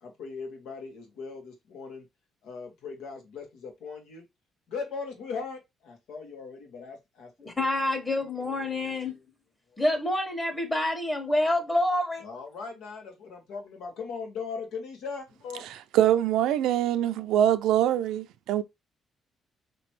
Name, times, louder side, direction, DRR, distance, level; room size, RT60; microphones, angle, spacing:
voice 1, 0.0-2.1 2.4-4.2 4.7-7.6 8.1-9.2 12.2-15.6, left 5 dB, 90° left, 1.7 m, -39 dB
voice 2, 7.4-9.2 9.8-12.2, left 1 dB, 20° left, 1.4 m, -27 dB
voice 3, 15.9-18.6, right 11 dB, 90° right, 0.5 m, -23 dB
5.1 x 3.0 x 3.1 m
cardioid pair, 90°, 0 cm